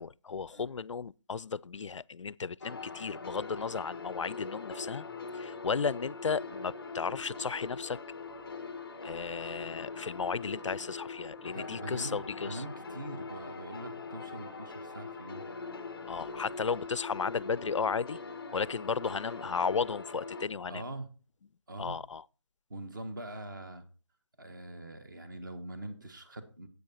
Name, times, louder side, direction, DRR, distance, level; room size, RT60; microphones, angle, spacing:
voice 1, 0.0-5.1 5.3-8.0 9.0-12.6 16.1-18.2 18.5-20.8 21.8-22.2, left 5 dB, 90° left, 0.4 m, -34 dB
sound 1, 2.6-20.5, left 4 dB, 5° left, 0.5 m, -42 dB
voice 2, 11.5-15.5 20.7-21.1 21.7-22.0 22.7-23.9 24.4-26.7, right 1 dB, 40° right, 1.7 m, -43 dB
10.5 x 8.3 x 4.3 m
figure-of-eight pair, 170°, 15 cm